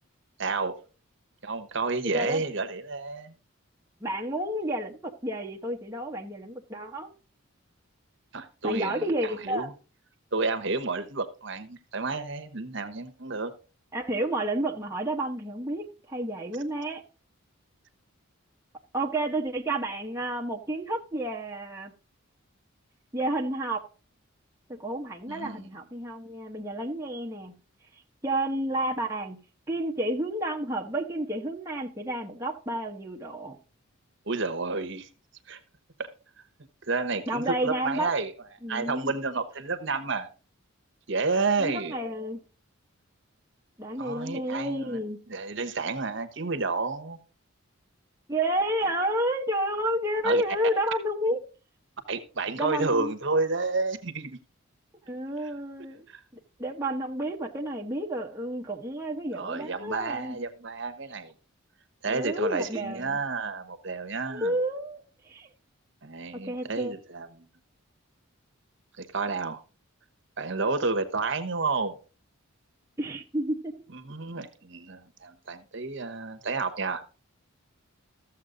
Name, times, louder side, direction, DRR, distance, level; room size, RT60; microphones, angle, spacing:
voice 1, 0.4-0.7 1.4-3.3 8.3-9.7 10.3-13.5 25.3-25.6 34.3-35.1 35.5-35.6 36.0-36.1 36.9-38.3 38.7-40.3 41.1-41.9 44.0-45.0 45.3-47.2 50.2-50.4 52.1-54.4 55.4-55.5 56.1-56.2 59.3-61.3 62.0-64.6 66.0-67.4 69.0-69.6 70.4-71.9 73.9-77.0, right 3 dB, 55° right, 1.1 m, -30 dB
voice 2, 4.0-7.1 8.6-9.7 13.9-17.0 18.9-21.9 23.1-23.8 24.7-27.5 28.2-29.4 29.7-33.6 37.3-38.1 38.6-39.1 41.6-42.4 43.8-45.2 48.3-51.4 52.6-53.1 55.1-56.0 56.6-60.4 62.1-63.2 64.3-65.5 66.3-66.9 73.0-73.7, right 1 dB, 15° right, 0.9 m, -30 dB
13.5 x 7.4 x 3.8 m
head